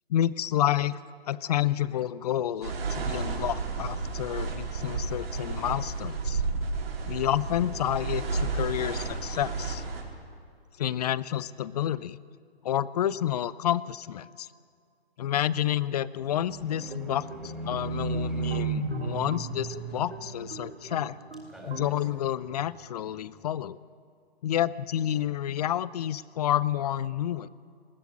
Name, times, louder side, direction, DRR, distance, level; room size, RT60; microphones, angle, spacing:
voice 1, 0.1-1.0 1.3-6.4 7.1-9.8 10.8-12.2 12.6-14.5 15.2-21.2 21.7-23.8 24.4-27.5, left 11 dB, 40° left, 19 dB, 0.6 m, -29 dB
sound 1, 2.6-10.0, right 4 dB, 65° right, 4.8 m, -32 dB
Livestock farm animals working animals, 16.3-21.1 21.3-22.0 22.5-22.6, right 3 dB, ahead, 3.8 m, -34 dB
sound 2, 16.7-21.9, right 4 dB, 80° right, 3.0 m, -44 dB
20.0 x 15.5 x 9.7 m, 2.2 s
hypercardioid pair, 140°, 31 cm